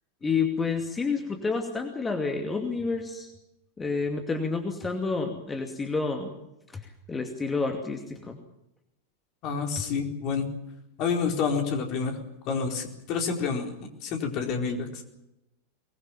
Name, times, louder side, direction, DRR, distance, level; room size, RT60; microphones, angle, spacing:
voice 1, 0.2-3.3 3.8-6.4 6.7-8.4, left 4 dB, 15° left, 4 dB, 2.5 m, -29 dB
voice 2, 9.4-10.5 11.0-12.2 12.5-13.7 14.0-15.0, left 5 dB, 40° left, 4 dB, 4.5 m, -28 dB
24.0 x 20.5 x 7.3 m, 0.88 s
figure-of-eight pair, 90°, 0 cm